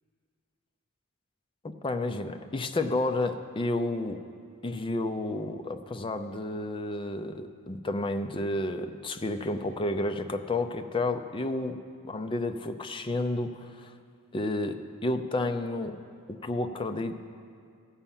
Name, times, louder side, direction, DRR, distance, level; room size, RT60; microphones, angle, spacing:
voice 1, 1.8-4.2 4.6-11.8 12.0-13.9 14.3-16.0 16.3-17.2, left 2 dB, 25° left, 7 dB, 0.5 m, -31 dB
15.5 x 5.6 x 7.2 m, 2.3 s
head